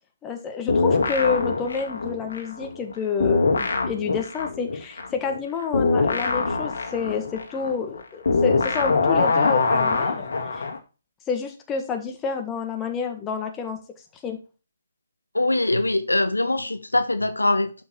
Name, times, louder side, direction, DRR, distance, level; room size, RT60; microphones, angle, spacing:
voice 1, 0.2-10.3 10.5-10.6 11.3-13.8 14.2-14.4, left 6 dB, 15° left, 1.7 m, -29 dB
sound 1, 0.7-2.9 3.2-10.8, left 4 dB, 60° left, 2.0 m, -23 dB
voice 2, 15.3-17.8, left 2 dB, 85° left, 1.3 m, -22 dB
11.5 x 5.9 x 4.6 m
figure-of-eight pair, 140°, 0 cm